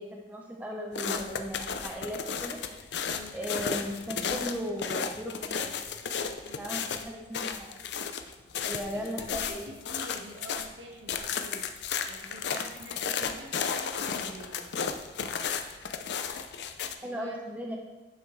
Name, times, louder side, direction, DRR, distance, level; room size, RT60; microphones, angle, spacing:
voice 1, 0.0-2.6 3.3-5.7 6.6-7.8 8.6-9.7 16.8-17.8, equal, 10° right, 0 dB, 0.6 m, -37 dB
Footsteps in the Snow, 0.9-10.7 11.1-17.0, left 6 dB, 60° left, 0.5 m, -34 dB
voice 2, 3.0-3.3 6.4-6.9 8.7-11.6 12.1-14.6 17.0-17.4, right 1 dB, 70° right, 0 dB, 1.4 m, -46 dB
10.5 x 5.6 x 3.2 m, 1.2 s
head